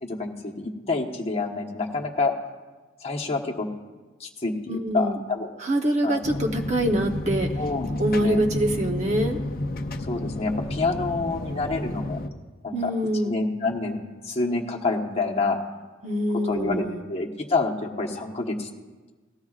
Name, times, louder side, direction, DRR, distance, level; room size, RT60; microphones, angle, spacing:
voice 1, 0.0-2.3 3.0-3.7 4.2-5.5 6.0-6.2 7.6-8.4 10.0-12.2 12.6-12.9 13.2-14.0 14.2-15.6 16.4-16.8 17.1-18.7, left 3 dB, 30° left, 0 dB, 1.2 m, -27 dB
voice 2, 4.7-5.2 5.6-7.5 8.0-9.4 12.7-13.3 16.0-17.0, right 1 dB, 35° right, 2 dB, 0.9 m, -24 dB
sound 1, 6.2-12.3, left 1 dB, 45° left, 0.7 m, -31 dB
18.5 x 14.5 x 2.4 m, 1.3 s
head